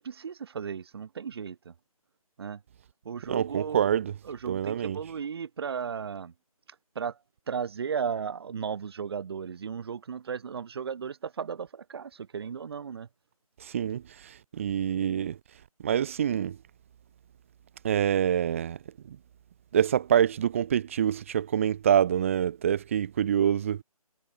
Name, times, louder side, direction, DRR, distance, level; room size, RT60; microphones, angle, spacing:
voice 1, 0.0-1.7 2.4-2.6 3.1-3.9 4.2-6.3 7.0-7.2 7.5-13.1, right 6 dB, 40° right, 7.0 m, -35 dB
voice 2, 3.3-4.1 4.5-5.0 13.6-15.4 15.8-16.6 17.8-18.8 19.1-19.2 19.7-23.8, right 9 dB, 20° right, 0.7 m, -26 dB
figure-of-eight pair, 155°, 19 cm